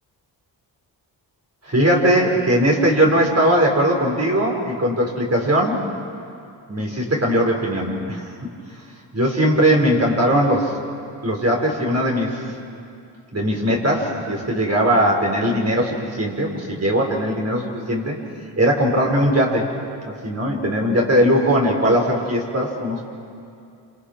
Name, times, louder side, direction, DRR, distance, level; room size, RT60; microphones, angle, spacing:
voice 1, 1.6-5.8 6.7-8.3 9.1-10.8 11.2-12.4 13.3-18.2 18.6-19.7 20.0-23.0, equal, 35° right, -1 dB, 5.8 m, -19 dB
28.0 x 27.5 x 6.2 m, 2.5 s
cardioid pair, 60°, 44 cm